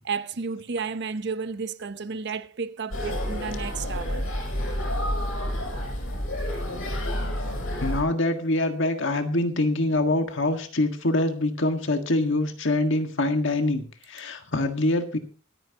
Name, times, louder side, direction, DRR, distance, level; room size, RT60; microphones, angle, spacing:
voice 1, 0.0-4.3 6.1-6.3, right 5 dB, 60° right, 0.8 m, -32 dB
sound 1, 2.9-8.0, equal, 85° left, 7.2 m, -29 dB
voice 2, 7.8-15.2, left 2 dB, 65° left, 1.7 m, -25 dB
24.5 x 9.0 x 2.9 m
head